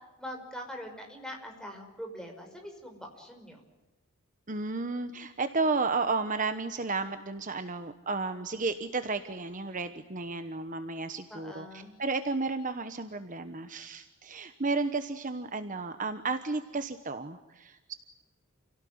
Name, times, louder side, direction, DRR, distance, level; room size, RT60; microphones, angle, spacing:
voice 1, 0.2-3.6 11.3-11.9, equal, 5° left, 2 dB, 5.4 m, -43 dB
voice 2, 4.5-17.9, right 3 dB, 35° right, 9 dB, 1.1 m, -33 dB
29.0 x 17.5 x 9.5 m, 1.1 s
head